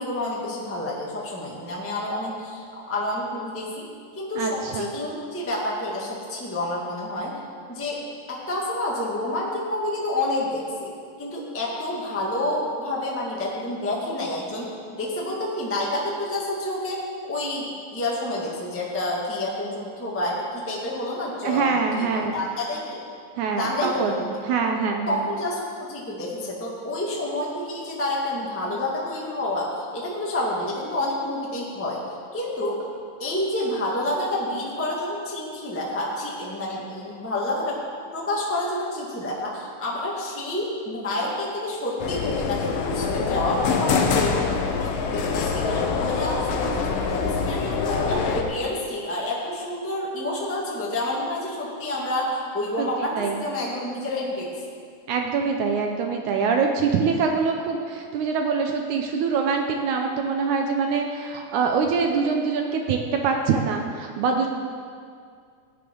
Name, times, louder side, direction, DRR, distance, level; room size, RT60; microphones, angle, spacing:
voice 1, 0.0-3.8 4.1-7.3 7.7-8.0 8.3-10.9 11.2-17.0 17.3-23.0 23.5-24.3 25.1-29.7 29.9-32.0 32.3-32.9 33.2-37.8 38.1-44.4 44.8-54.6, left 1 dB, 10° left, -4 dB, 0.8 m, -29 dB
voice 2, 4.4-4.9 21.4-22.4 23.4-25.2 52.8-53.4 55.1-64.5, right 5 dB, 80° right, 3 dB, 1.8 m, -24 dB
sound 1, 42.0-48.4, left 5 dB, 70° left, 2.4 m, -25 dB
16.5 x 10.0 x 3.9 m, 2.2 s
omnidirectional pair, 4.2 m